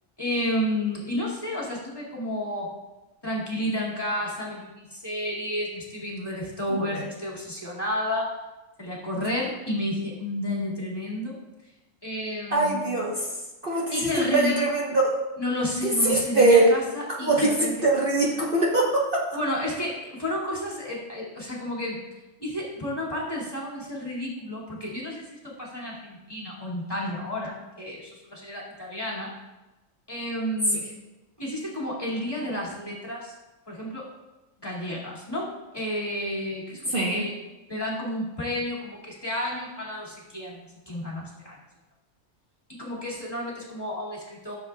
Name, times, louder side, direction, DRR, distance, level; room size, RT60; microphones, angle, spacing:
voice 1, 0.2-2.7 3.2-8.3 8.8-11.4 12.0-12.9 13.9-14.5 15.4-17.7 19.3-22.0 22.4-29.3 30.1-30.9 31.4-33.4 33.7-34.1 34.6-37.3 37.7-41.6 42.7-44.5, left 1 dB, 20° left, -6 dB, 2.3 m, -31 dB
voice 2, 6.7-7.1 12.5-13.4 13.6-15.2 15.8-16.7 17.1-19.3 36.9-37.3, right 2 dB, 45° right, -4 dB, 1.2 m, -22 dB
14.0 x 7.3 x 2.3 m, 1.1 s
omnidirectional pair, 1.4 m